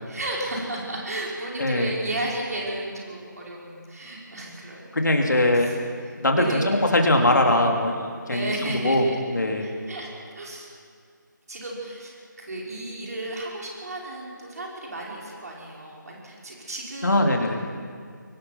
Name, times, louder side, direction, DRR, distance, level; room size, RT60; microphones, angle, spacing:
voice 1, 0.1-5.2 5.5-5.8 6.4-6.8 8.3-9.2 9.6-10.7 11.5-17.6, right 1 dB, 50° right, -3 dB, 5.3 m, -34 dB
voice 2, 1.6-1.9 4.9-5.7 6.1-8.0 8.3-9.7 17.0-17.6, left 1 dB, 65° left, 2 dB, 3.1 m, -21 dB
24.0 x 18.5 x 6.0 m, 2.1 s
figure-of-eight pair, 155°, 11 cm